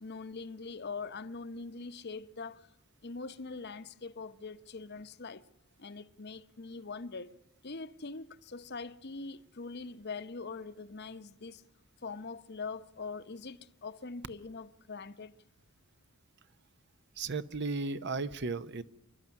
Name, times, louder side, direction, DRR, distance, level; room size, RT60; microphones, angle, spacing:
voice 1, 0.0-2.7 3.0-5.5 5.8-7.3 7.6-11.6 12.0-15.3, left 4 dB, 50° left, 0.9 m, -43 dB
voice 2, 17.2-18.8, right 3 dB, 55° right, 0.8 m, -35 dB
28.5 x 12.0 x 9.8 m
head